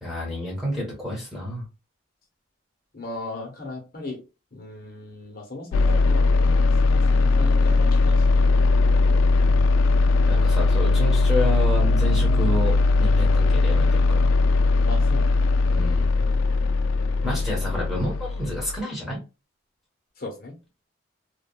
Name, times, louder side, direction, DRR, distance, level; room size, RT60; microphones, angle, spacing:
voice 1, 0.0-1.6 9.4-9.6 10.3-14.3 15.7-16.1 17.2-19.2, left 1 dB, ahead, 1.0 m, -30 dB
voice 2, 2.9-4.2 4.5-9.2 14.9-15.4 16.9-17.7 20.2-20.5, left 2 dB, 45° left, 0.8 m, -38 dB
sound 1, 5.7-18.8, left 3 dB, 85° left, 0.3 m, -19 dB
2.8 x 2.3 x 2.2 m
head